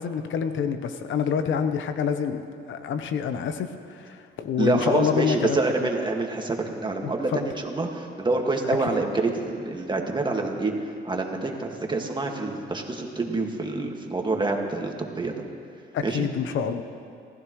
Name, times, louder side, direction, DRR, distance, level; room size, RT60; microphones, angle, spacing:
voice 1, 0.0-5.9 7.0-7.4 8.9-9.0 15.9-16.8, left 7 dB, 75° left, 8 dB, 1.0 m, -27 dB
voice 2, 4.6-10.7 11.0-15.4 16.0-16.3, right 3 dB, 25° right, 2 dB, 2.0 m, -27 dB
27.5 x 15.0 x 3.2 m, 2.4 s
cardioid pair, 90°, 20 cm